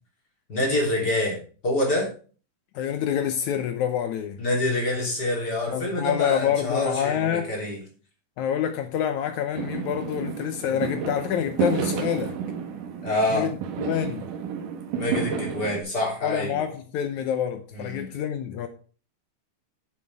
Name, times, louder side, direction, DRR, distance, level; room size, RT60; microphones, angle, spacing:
voice 1, 0.5-2.1 4.4-7.8 10.7-10.9 13.0-13.5 14.9-16.6 17.7-18.1, left 1 dB, 25° left, 3.4 m, -26 dB
voice 2, 2.7-4.4 5.7-7.5 8.4-12.4 13.3-13.6 13.9-14.3 16.2-18.7, left 9 dB, 85° left, 1.6 m, -27 dB
Fireworks, 9.5-15.8, right 6 dB, 65° right, 2.6 m, -31 dB
10.0 x 7.5 x 4.6 m
omnidirectional pair, 4.6 m